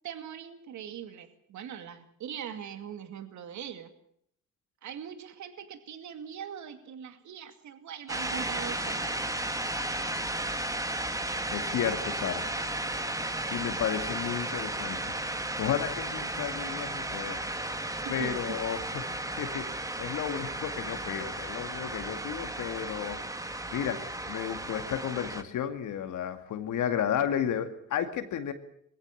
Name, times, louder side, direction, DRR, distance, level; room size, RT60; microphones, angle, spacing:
voice 1, 0.0-3.9 4.8-9.4 18.0-18.6, right 8 dB, 70° right, 9 dB, 2.4 m, -41 dB
sound 1, 8.1-25.4, right 1 dB, 10° right, 2.0 m, -34 dB
voice 2, 11.5-12.5 13.5-17.4 18.1-19.0 19.3-23.2 23.7-28.5, left 9 dB, 75° left, 8 dB, 2.3 m, -33 dB
21.5 x 16.0 x 8.6 m, 0.70 s
cardioid pair, 90°, 30 cm